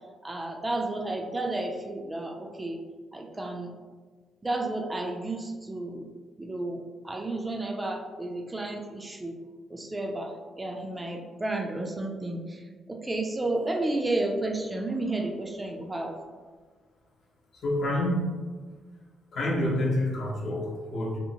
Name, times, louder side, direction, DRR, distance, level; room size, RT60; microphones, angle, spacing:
voice 1, 0.2-2.8 3.1-3.7 4.4-6.1 6.4-9.4 9.7-16.1, right 2 dB, 20° right, 1 dB, 0.3 m, -32 dB
voice 2, 17.5-18.3 19.3-21.2, left 1 dB, 60° left, -1 dB, 0.6 m, -28 dB
2.8 x 2.1 x 2.7 m, 1.4 s
cardioid pair, 90°, 0 cm